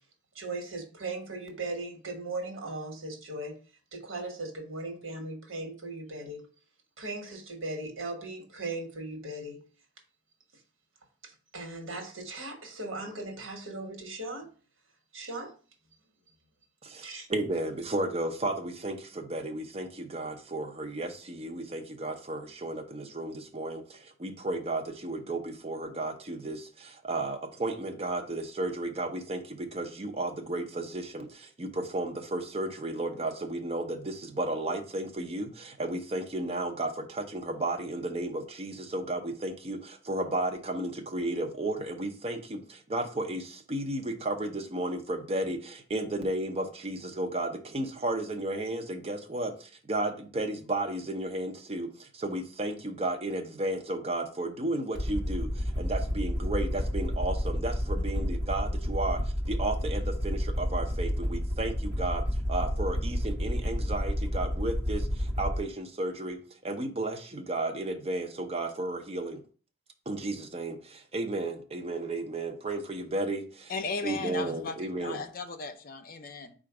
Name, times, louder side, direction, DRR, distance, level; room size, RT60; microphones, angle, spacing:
voice 1, 0.3-3.6 3.9-6.4 7.0-9.6 11.2-14.5 15.1-15.5 17.0-17.3, right 2 dB, 80° right, 1.3 m, -38 dB
voice 2, 16.8-62.2 62.5-69.4 70.1-73.7 74.0-75.2, right 2 dB, 30° right, 0.6 m, -33 dB
Aircraft, 55.0-65.6, equal, 60° right, 1.0 m, -30 dB
voice 3, 73.7-76.5, left 4 dB, 45° left, 0.5 m, -36 dB
4.3 x 2.5 x 4.7 m
head